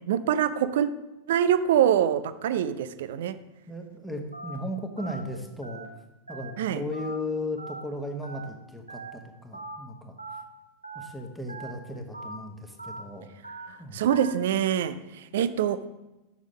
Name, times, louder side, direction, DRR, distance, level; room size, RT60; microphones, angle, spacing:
voice 1, 0.1-0.9 1.3-3.4 6.6-6.8 13.7-15.9, right 9 dB, 55° right, 13 dB, 0.5 m, -25 dB
voice 2, 3.7-5.9 6.3-10.1 10.9-13.3 13.8-14.0, left 1 dB, ahead, 3 dB, 1.2 m, -36 dB
Telephone, 4.3-4.5 5.0-5.2 5.6-5.8 6.3-6.5 6.9-7.2 7.6-7.8 8.2-8.5 8.9-9.1 9.5-9.8 10.2-10.4 10.8-11.1 11.5-11.7 12.1-12.4 12.8-13.0 13.4-13.7 14.1-14.3, right 3 dB, 85° right, 1.0 m, -40 dB
7.1 x 6.3 x 5.2 m, 1.0 s
figure-of-eight pair, 90°, 0 cm